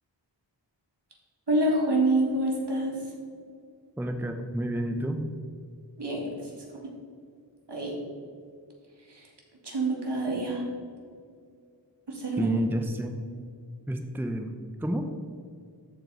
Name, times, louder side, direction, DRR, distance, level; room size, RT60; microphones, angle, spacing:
voice 1, 1.5-2.9 6.0-6.6 7.7-8.0 9.1-9.3 9.6-10.6 12.1-12.5, right 1 dB, 65° right, -2 dB, 2.2 m, -27 dB
voice 2, 4.0-5.2 12.4-13.2 13.9-15.1, right 1 dB, 5° right, 5 dB, 0.7 m, -29 dB
13.0 x 4.5 x 4.0 m, 2.2 s
wide cardioid pair, 45°, 44 cm